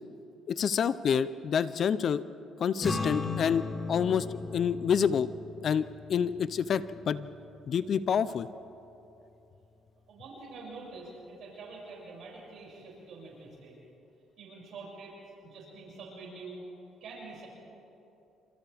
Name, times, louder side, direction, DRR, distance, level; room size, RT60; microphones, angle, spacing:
voice 1, 0.5-2.2 2.6-4.3 4.5-5.3 5.6-7.3 7.7-8.5, left 7 dB, 55° left, 15 dB, 0.6 m, -28 dB
sound 1, 2.8-9.4, left 3 dB, 25° left, 2.6 m, -38 dB
voice 2, 10.1-13.8 14.4-15.1 15.4-16.6 17.0-17.5, right 3 dB, 65° right, -4 dB, 6.7 m, -46 dB
28.0 x 27.0 x 3.5 m, 2.8 s
cardioid pair, 90°, 0 cm